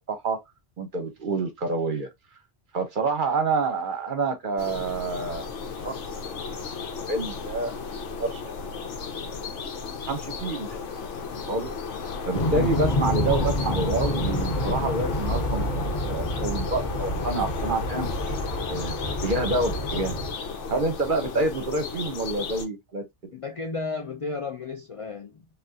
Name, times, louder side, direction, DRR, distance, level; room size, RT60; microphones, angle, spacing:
voice 1, 0.1-0.4 0.8-2.1 2.7-5.5 5.8-5.9 6.2-6.6 6.9-7.7 8.2-8.6 9.0-9.6 10.1-10.7 11.5-11.7 12.3-15.7 16.1-18.1 18.6-20.1 20.7-23.0, right 3 dB, 50° right, 0.8 m, -28 dB
sound 1, 4.6-22.7, left 5 dB, 80° left, 1.0 m, -34 dB
sound 2, 12.3-20.3, equal, 40° left, 1.1 m, -28 dB
voice 2, 23.3-25.5, left 4 dB, 60° left, 0.3 m, -33 dB
3.5 x 2.4 x 2.6 m
omnidirectional pair, 1.2 m